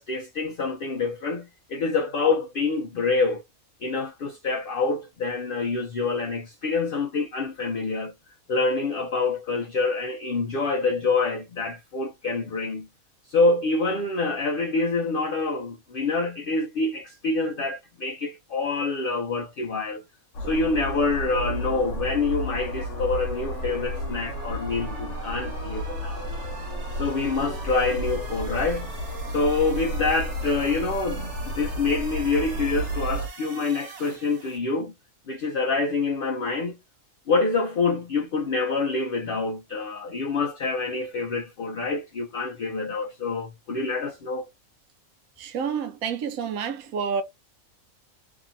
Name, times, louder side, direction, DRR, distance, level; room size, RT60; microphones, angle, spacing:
voice 1, 0.0-3.4 3.8-8.1 8.5-12.9 13.3-20.0 20.4-26.3 26.9-29.0 29.3-34.9 35.3-36.8 37.3-44.5, left 3 dB, 90° left, 0.4 m, -26 dB
sound 1, 20.3-33.3, equal, 65° left, 1.0 m, -32 dB
sound 2, 20.4-34.6, right 5 dB, 55° right, 1.1 m, -42 dB
voice 2, 45.4-47.2, right 6 dB, 85° right, 1.0 m, -29 dB
2.8 x 2.6 x 2.5 m
omnidirectional pair, 1.5 m